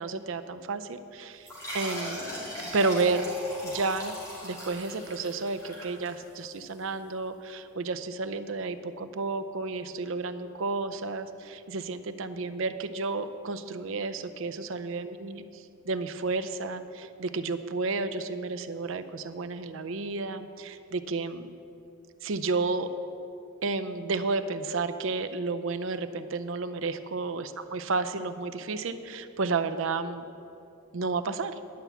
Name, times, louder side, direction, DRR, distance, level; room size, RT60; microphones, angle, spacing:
voice 1, 0.0-1.5 1.7-2.3 2.7-3.3 3.6-4.2 4.4-15.4 15.9-21.5 22.2-22.9 23.6-30.2 30.9-31.6, right 3 dB, 60° right, 10 dB, 0.5 m, -31 dB
sound 1, 1.4-6.6, equal, 15° left, 2.6 m, -39 dB
11.0 x 5.7 x 8.1 m, 2.8 s
head